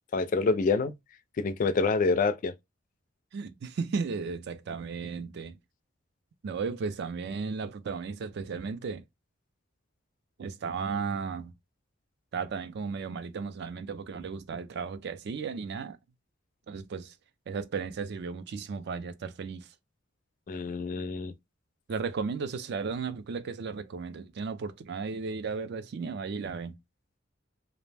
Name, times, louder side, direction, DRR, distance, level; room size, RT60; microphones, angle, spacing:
voice 1, 0.1-0.9 1.4-2.5 20.5-21.3, left 4 dB, 40° left, 0.3 m, -27 dB
voice 2, 3.3-5.5 6.4-9.0 10.4-11.5 12.3-16.0 16.7-17.1 17.5-19.7 21.9-26.7, right 5 dB, 60° right, 0.4 m, -35 dB
2.4 x 2.0 x 3.2 m
head